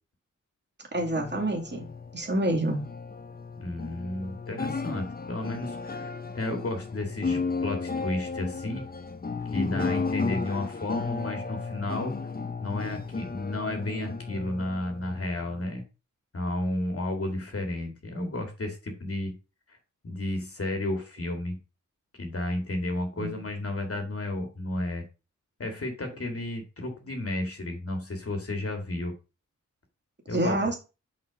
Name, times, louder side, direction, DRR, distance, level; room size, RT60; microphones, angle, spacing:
voice 1, 0.9-1.9 2.1-2.8 23.2-23.3 30.3-30.8, right 1 dB, 35° right, 1 dB, 2.4 m, -27 dB
sound 1, 1.0-15.6, left 4 dB, 30° left, 0.8 m, -34 dB
voice 2, 3.6-8.9 9.5-12.2 12.6-15.9 16.3-19.4 19.7-19.8 20.0-21.6 22.2-25.0 25.6-29.1 30.3-30.5, left 1 dB, 45° left, 4 dB, 2.0 m, -32 dB
5.7 x 5.1 x 5.0 m, 0.30 s
cardioid pair, 75°, 32 cm